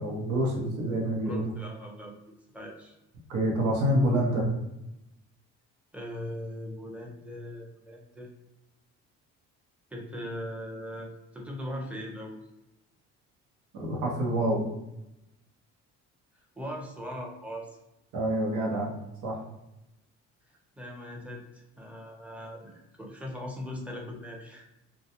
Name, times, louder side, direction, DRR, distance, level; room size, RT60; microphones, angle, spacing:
voice 1, 0.0-1.5 3.3-4.5 13.7-14.6 18.1-18.9 19.2-19.4, right 1 dB, 65° right, -2 dB, 0.8 m, -27 dB
voice 2, 1.2-2.9 5.9-8.3 9.9-12.4 16.6-17.8 20.7-24.7, equal, 5° right, -1 dB, 0.7 m, -40 dB
2.2 x 2.2 x 2.8 m, 0.90 s
supercardioid pair, 70°, 33 cm